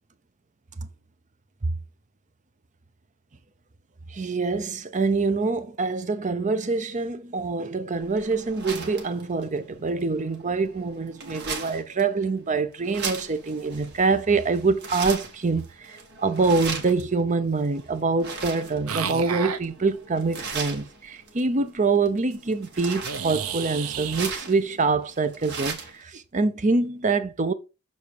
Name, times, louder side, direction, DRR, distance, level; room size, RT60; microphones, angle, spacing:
voice 1, 4.1-27.5, right 4 dB, 35° right, 0.6 m, -25 dB
sound 1, 7.9-26.0, right 4 dB, 50° right, 1.8 m, -38 dB
sound 2, 18.9-19.6 23.0-24.3, right 7 dB, 75° right, 0.8 m, -31 dB
6.8 x 4.1 x 4.7 m
head